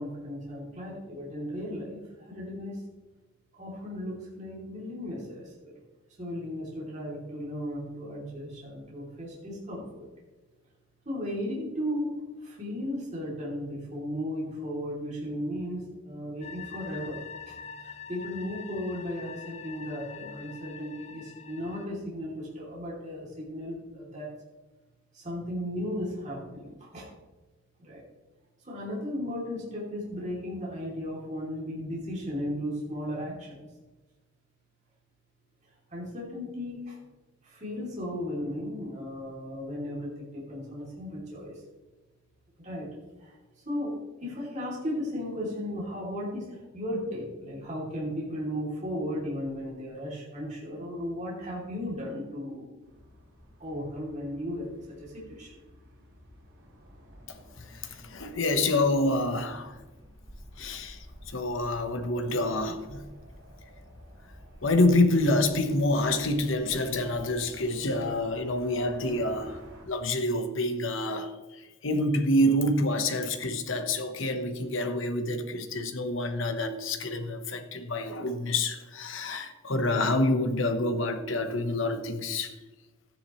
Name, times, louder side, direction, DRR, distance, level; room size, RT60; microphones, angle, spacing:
voice 1, 0.0-2.8 3.6-5.7 6.2-10.0 11.0-12.1 12.4-24.3 25.1-27.1 27.8-28.0 28.6-33.6 35.9-37.0 37.4-41.6 42.6-42.9 43.2-43.4 43.6-43.9 44.2-52.7 53.6-54.7 55.0-55.6, equal, 35° right, 2.9 m, -35 dB
sound 1, 16.4-21.9, left 6 dB, 30° left, 0.6 m, -44 dB
sound 2, 52.8-69.9, equal, 75° right, 3.4 m, -51 dB
voice 2, 57.7-59.8 60.6-63.0 64.6-82.5, left 1 dB, 65° left, 1.1 m, -27 dB
13.0 x 10.5 x 3.1 m
head